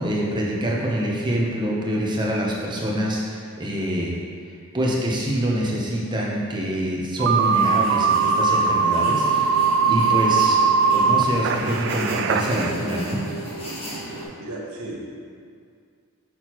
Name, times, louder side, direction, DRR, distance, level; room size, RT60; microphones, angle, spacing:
voice 1, 0.0-4.2 4.7-10.6 10.9-13.2, equal, 20° right, -4 dB, 0.8 m, -25 dB
sound 1, 7.2-12.7, right 5 dB, 55° right, 0.3 m, -20 dB
sound 2, 7.4-14.2, right 1 dB, 25° left, 1.5 m, -34 dB
voice 2, 14.4-15.0, right 2 dB, 75° right, -3 dB, 1.1 m, -34 dB
6.3 x 5.9 x 3.0 m, 2.2 s
head